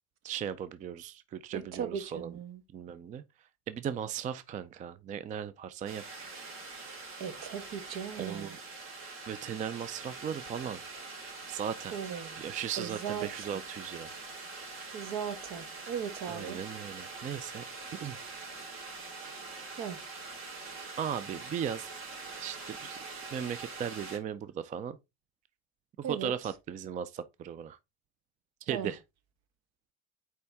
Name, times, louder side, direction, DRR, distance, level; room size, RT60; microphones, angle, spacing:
voice 1, 0.2-2.3 2.7-3.2 3.7-6.0 8.2-8.6 9.3-10.8 11.5-12.0 12.4-14.1 16.3-17.6 18.0-18.2 21.0-21.9 22.4-25.0 26.1-27.8 28.6-29.0, right 8 dB, 25° right, 0.4 m, -37 dB
voice 2, 1.5-2.6 7.2-8.6 11.9-12.4 12.8-13.5 14.9-16.6 19.7-20.0 26.0-26.3 28.7-28.9, right 7 dB, 60° right, 1.2 m, -38 dB
sound 1, 5.9-24.2, right 3 dB, 45° right, 2.5 m, -44 dB
6.8 x 4.7 x 3.4 m
cardioid pair, 130°, 30 cm